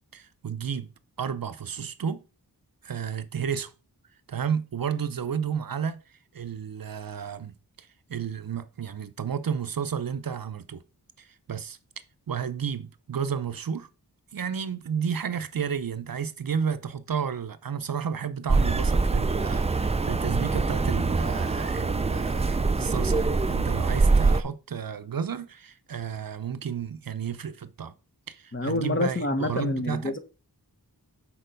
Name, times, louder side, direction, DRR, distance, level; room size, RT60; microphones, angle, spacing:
voice 1, 0.1-0.9 1.2-2.2 2.8-3.7 4.3-6.0 6.3-10.8 11.2-11.8 12.3-13.9 14.3-27.9 28.3-30.1, right 7 dB, 60° right, 0.6 m, -32 dB
sound 1, 18.5-24.4, right 3 dB, 15° right, 0.4 m, -24 dB
voice 2, 28.5-30.2, left 2 dB, 30° left, 1.0 m, -27 dB
6.7 x 4.3 x 5.1 m
wide cardioid pair, 80°, 38 cm